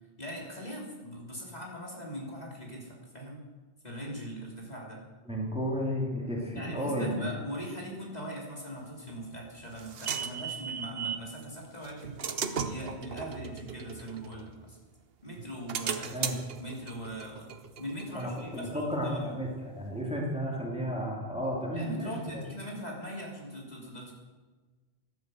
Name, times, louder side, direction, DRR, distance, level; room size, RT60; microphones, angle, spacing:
voice 1, 0.2-3.4 3.8-5.0 6.6-12.2 12.6-14.8 15.2-17.5 17.8-19.4 21.7-24.1, equal, 40° left, -2 dB, 3.4 m, -41 dB
voice 2, 5.3-7.3 16.0-16.3 18.1-22.4, equal, 5° right, -2 dB, 2.9 m, -33 dB
sound 1, 9.1-11.3 11.8-14.9 15.4-18.8, right 6 dB, 70° right, 1.1 m, -37 dB
13.5 x 11.5 x 7.7 m, 1.3 s
omnidirectional pair, 1.1 m